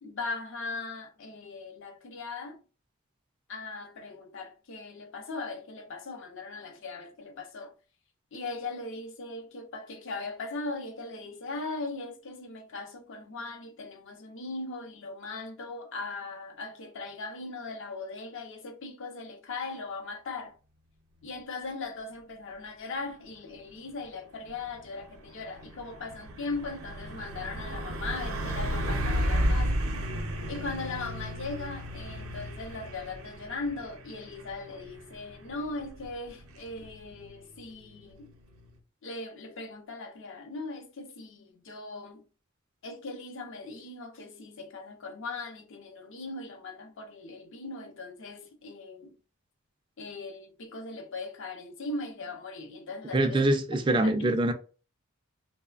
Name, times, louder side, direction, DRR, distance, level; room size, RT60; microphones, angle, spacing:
voice 1, 0.0-2.6 3.5-7.7 8.3-20.6 21.2-29.8 30.5-38.3 39.0-42.2 42.8-49.1 50.0-53.5 54.0-54.3, left 3 dB, 65° left, 0.6 m, -39 dB
Truck, 24.5-38.8, equal, 80° right, 0.6 m, -34 dB
voice 2, 53.1-54.5, right 1 dB, 25° right, 0.3 m, -24 dB
3.1 x 2.0 x 2.3 m
head